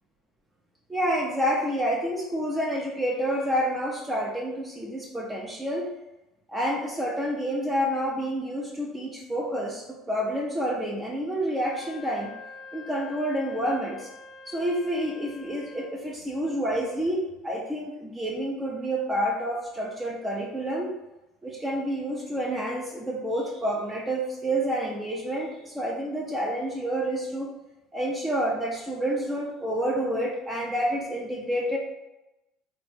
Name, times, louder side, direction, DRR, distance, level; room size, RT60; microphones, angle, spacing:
voice 1, 0.9-5.8 6.5-12.3 12.7-14.1 14.5-20.9 21.4-27.5 27.9-31.8, equal, 15° right, -2 dB, 0.5 m, -29 dB
Wind instrument woodwind instrument, 11.5-16.0, left 3 dB, 50° left, 0.6 m, -46 dB
3.1 x 2.1 x 3.2 m, 0.98 s
hypercardioid pair, 75°, 0 cm